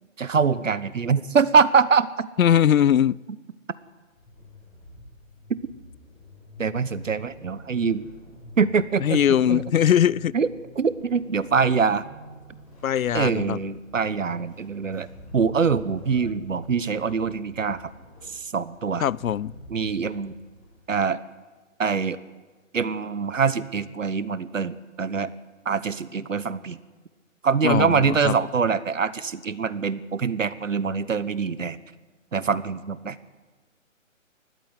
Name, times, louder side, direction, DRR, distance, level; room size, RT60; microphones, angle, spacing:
voice 1, 0.2-2.3 6.6-8.1 8.6-9.2 9.5-9.6 10.3-10.5 10.7-12.0 13.1-15.1 15.3-17.9 18.3-19.0 19.7-20.4 20.9-21.2 21.8-22.2 22.7-25.3 25.6-26.8 27.4-31.8 32.3-33.2, right 5 dB, 70° right, 16 dB, 1.2 m, -24 dB
voice 2, 2.4-3.2 9.0-10.3 12.8-13.6 19.0-19.5 27.6-28.3, left 9 dB, 85° left, 25 dB, 0.6 m, -20 dB
Vehicle / Accelerating revving vroom / Squeak, 3.8-21.0, equal, 10° left, 5.3 m, -47 dB
19.5 x 14.0 x 9.7 m, 1.3 s
hypercardioid pair, 180°, 40 cm